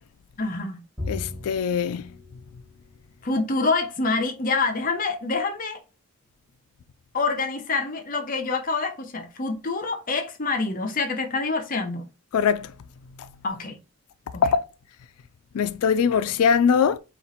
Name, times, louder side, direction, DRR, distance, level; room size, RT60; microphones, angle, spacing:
voice 1, 0.4-0.8 3.2-5.8 7.1-12.1 13.4-13.8 14.3-14.4, left 3 dB, 40° left, 0.6 m, -26 dB
Bowed string instrument, 1.0-3.5, left 2 dB, 10° right, 1.1 m, -38 dB
voice 2, 1.1-2.1 12.3-12.7 14.4-14.7 15.5-17.0, left 6 dB, 80° left, 0.4 m, -21 dB
4.3 x 2.5 x 4.1 m
head